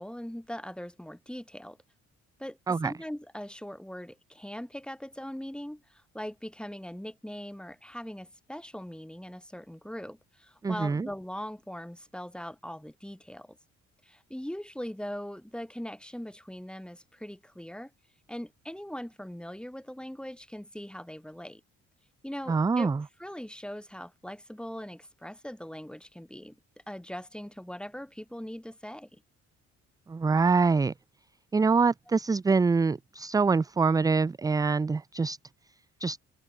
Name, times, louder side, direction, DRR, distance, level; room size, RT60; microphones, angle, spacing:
voice 1, 0.0-1.8 2.4-2.6 2.8-13.6 14.0-17.9 18.3-21.6 22.2-22.9 23.2-26.6 26.9-29.2, equal, 5° left, 7.3 m, -40 dB
voice 2, 10.6-11.1 22.5-23.0 30.1-30.9 31.5-35.4 36.0-36.2, right 4 dB, 15° right, 0.3 m, -25 dB
open air
cardioid pair, 90°, 30 cm